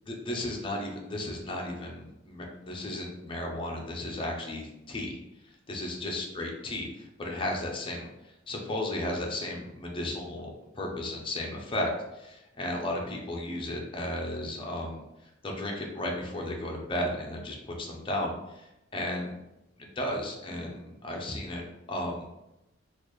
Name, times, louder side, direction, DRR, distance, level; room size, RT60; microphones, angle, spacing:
voice 1, 0.3-5.2 5.4-19.4 19.8-22.2, left 1 dB, 25° left, 0 dB, 0.7 m, -34 dB
4.1 x 2.5 x 3.1 m, 0.91 s
head